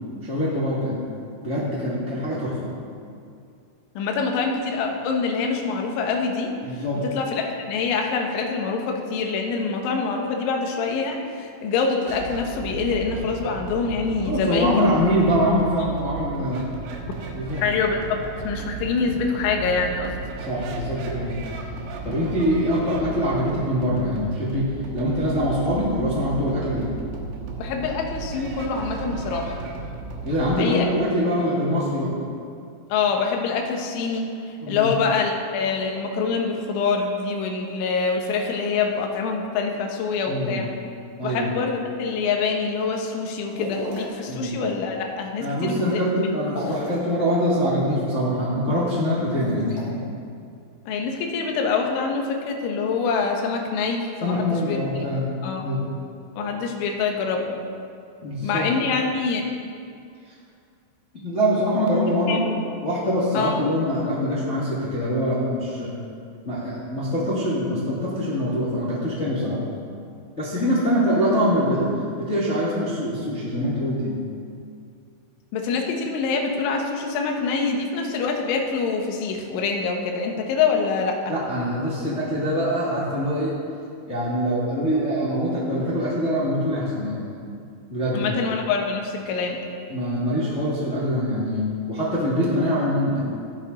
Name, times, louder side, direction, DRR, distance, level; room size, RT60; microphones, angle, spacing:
voice 1, 0.2-1.0 1.4-2.7 6.6-7.0 14.2-16.6 17.3-17.6 20.4-21.4 22.0-24.7 24.9-26.9 30.2-32.1 34.6-34.9 40.2-40.7 41.2-41.5 44.3-44.6 45.4-50.0 54.2-55.3 55.6-55.8 58.2-58.7 60.3-60.4 61.2-62.4 62.8-65.9 66.4-69.6 70.3-71.9 72.3-74.2 81.3-83.5 84.1-87.2 87.9-88.3 89.9-93.2, equal, 40° left, -9 dB, 1.0 m, -24 dB
voice 2, 4.0-6.5 7.0-14.7 17.6-18.2 18.4-20.1 27.6-29.6 30.6-30.9 32.9-40.7 41.2-46.0 50.9-54.8 55.4-55.6 56.4-57.6 58.4-59.4 62.3-62.4 63.3-63.5 75.5-81.3 88.1-89.6, left 5 dB, 75° left, 2 dB, 3.4 m, -25 dB
sound 1, 12.1-30.6, right 5 dB, 80° right, 3.7 m, -35 dB
sound 2, 43.5-44.2 46.4-47.1 49.2-49.8, equal, 55° left, 1.5 m, -34 dB
15.0 x 11.5 x 4.1 m, 2.4 s
omnidirectional pair, 6.0 m